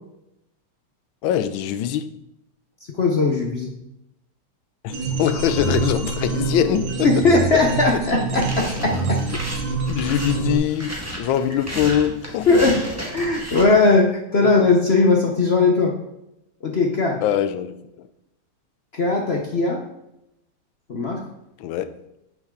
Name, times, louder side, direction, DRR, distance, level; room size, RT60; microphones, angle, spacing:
voice 1, 1.2-2.1 4.8-7.1 9.3-9.4 9.9-12.6 14.4-14.5 17.2-18.1 21.6-21.9, left 10 dB, 75° left, 12 dB, 1.3 m, -23 dB
voice 2, 3.0-3.7 7.0-9.2 12.5-12.8 13.1-16.0 16.6-17.2 18.9-19.8 20.9-21.2, left 3 dB, 55° left, 1 dB, 0.7 m, -19 dB
sound 1, 4.9-10.6, right 4 dB, 80° right, 2.2 m, -26 dB
sound 2, 8.1-13.6, right 1 dB, 10° right, 1.4 m, -33 dB
8.7 x 7.2 x 3.8 m, 0.87 s
omnidirectional pair, 2.3 m